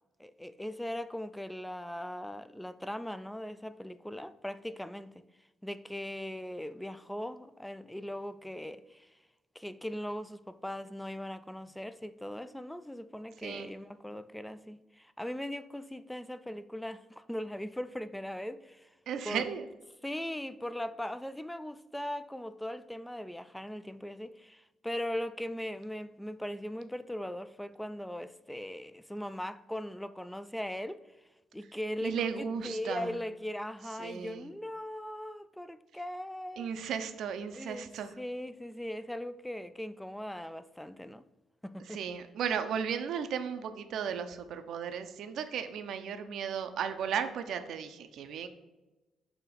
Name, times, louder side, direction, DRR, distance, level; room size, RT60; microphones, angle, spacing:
voice 1, 0.2-5.2 5.6-9.1 9.6-18.9 19.2-19.5 20.0-31.0 31.5-32.3 32.6-36.8 37.5-41.2 41.6-42.0, left 1 dB, 5° left, 0.4 m, -39 dB
voice 2, 19.1-19.7 32.0-33.1 34.0-34.5 36.6-38.1 41.9-48.5, right 7 dB, 75° right, 0.6 m, -35 dB
7.1 x 2.9 x 5.0 m
cardioid pair, 90°, 0 cm